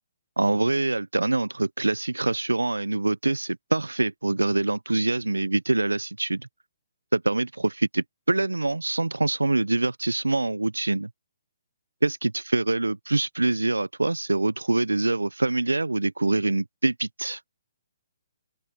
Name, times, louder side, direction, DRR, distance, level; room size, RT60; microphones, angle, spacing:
voice 1, 0.4-6.5 7.1-11.1 12.0-17.4, right 2 dB, 85° right, 1.1 m, -25 dB
open air
figure-of-eight pair, 135°, 0 cm